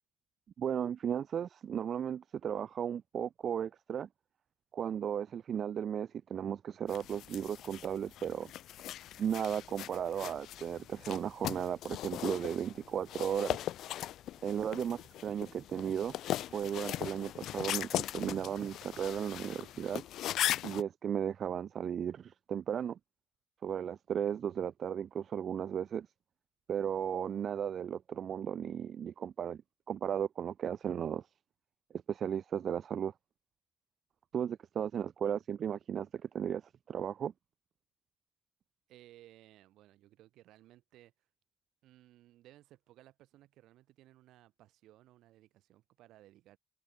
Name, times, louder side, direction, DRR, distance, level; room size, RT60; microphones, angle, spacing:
voice 1, 0.6-4.1 4.7-8.5 9.2-13.6 14.4-16.2 16.5-20.0 20.6-23.0 23.6-26.1 26.7-29.6 29.9-31.2 32.1-33.1 34.3-36.6 36.9-37.3, right 8 dB, 60° right, 0.3 m, -35 dB
sound 1, 6.9-20.8, left 13 dB, 80° left, 0.8 m, -39 dB
voice 2, 38.9-41.1 41.8-46.6, right 15 dB, 90° right, 5.5 m, -60 dB
cardioid pair, 90°, 0 cm